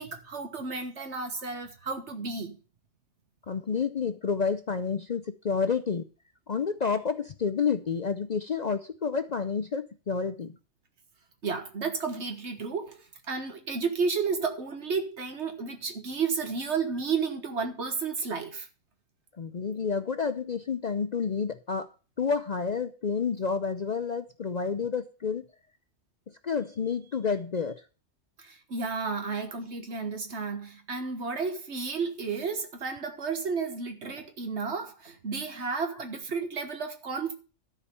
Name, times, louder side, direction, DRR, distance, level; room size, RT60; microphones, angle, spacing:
voice 1, 0.0-2.6 11.4-13.0 13.3-18.7 28.4-37.3, right 5 dB, 70° right, 1.8 m, -32 dB
voice 2, 3.5-6.0 6.5-10.6 19.4-21.9 22.2-25.4 26.4-27.8 29.2-29.3, left 5 dB, 45° left, 0.6 m, -29 dB
12.5 x 4.9 x 6.9 m
omnidirectional pair, 1.2 m